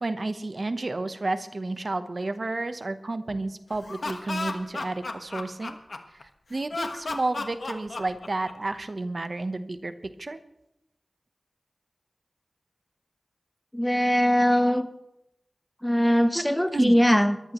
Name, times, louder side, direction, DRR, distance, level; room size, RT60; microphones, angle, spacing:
voice 1, 0.0-5.8 6.2-10.4 16.3-16.4 16.7-17.0, right 2 dB, 50° right, 10 dB, 0.9 m, -31 dB
Laughter, 3.7-6.2 6.7-8.7, left 3 dB, 70° left, 1.3 m, -34 dB
voice 2, 13.7-14.9 15.8-17.5, equal, 10° left, 9 dB, 1.0 m, -21 dB
22.5 x 15.0 x 3.1 m, 0.83 s
wide cardioid pair, 60°, 0 cm